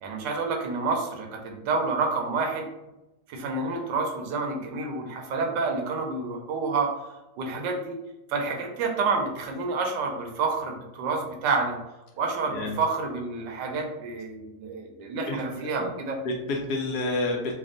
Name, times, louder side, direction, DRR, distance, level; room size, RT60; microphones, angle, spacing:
voice 1, 0.0-2.7 3.3-6.9 7.4-8.0 8.3-11.8 12.2-16.2, right 4 dB, 85° right, 2 dB, 1.3 m, -29 dB
voice 2, 15.3-15.9 16.2-17.5, left 2 dB, 70° left, 0 dB, 1.1 m, -29 dB
3.4 x 2.3 x 3.7 m, 0.97 s
omnidirectional pair, 1.9 m